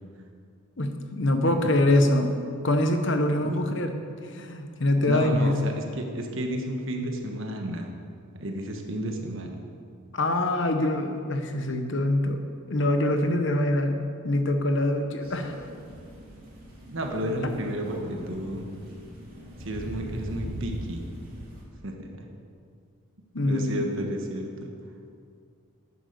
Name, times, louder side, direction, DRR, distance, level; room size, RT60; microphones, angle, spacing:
voice 1, 0.8-2.4 2.6-3.9 4.2-5.6 10.1-12.4 12.7-14.0 14.2-15.5 23.3-23.9, left 1 dB, 55° left, 6 dB, 1.2 m, -24 dB
voice 2, 5.0-7.9 8.4-9.6 16.9-18.7 19.6-21.1 21.8-22.1 23.4-24.7, right 1 dB, 65° right, 2 dB, 1.3 m, -32 dB
Crow, 15.2-21.6, right 1 dB, 45° right, 2.9 m, -39 dB
10.0 x 9.9 x 6.8 m, 2.3 s
head